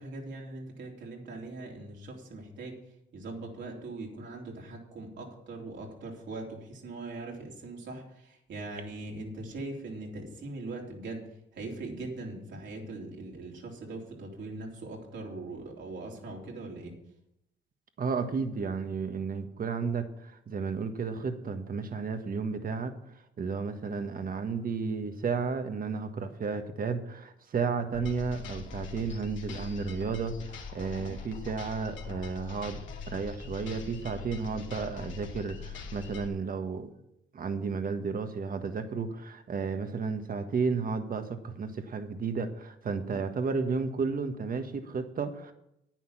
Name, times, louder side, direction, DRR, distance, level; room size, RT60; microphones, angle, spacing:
voice 1, 0.0-2.8 3.1-11.2 11.6-16.9 31.0-31.1 43.1-43.2, right 2 dB, 65° right, -1 dB, 3.7 m, -41 dB
voice 2, 18.0-23.0 23.4-32.8 33.1-36.9 37.3-45.5, right 5 dB, 45° right, 7 dB, 1.5 m, -33 dB
sound 1, 27.9-36.3, left 5 dB, 70° left, 2.3 m, -42 dB
10.5 x 9.5 x 5.9 m, 0.80 s
cardioid pair, 90°, 20 cm